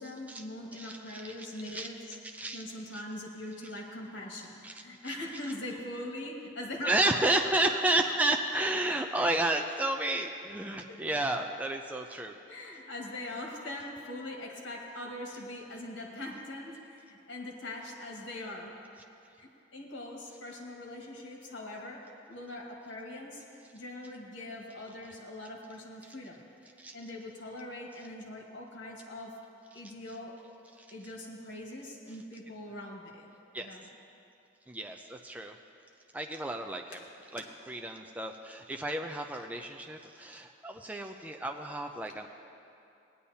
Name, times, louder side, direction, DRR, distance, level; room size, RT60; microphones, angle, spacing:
voice 1, 0.0-2.2 2.5-6.9 10.9-11.0 12.5-18.7 19.4-22.0 22.3-23.4 23.7-26.4 26.9-29.3 29.7-30.3 30.9-33.9 36.9-37.1 37.4-37.5 42.1-42.2, left 1 dB, 65° left, -1 dB, 1.6 m, -42 dB
voice 2, 0.7-1.4 1.6-1.9 2.3-2.6 2.9-3.0 4.6-5.1 6.9-12.4 26.0-26.1 26.8-26.9 30.8-30.9 33.5-33.7 34.7-35.6 36.1-37.0 37.3-42.3, right 1 dB, 10° right, 3 dB, 0.4 m, -32 dB
18.0 x 10.0 x 2.8 m, 2.6 s
head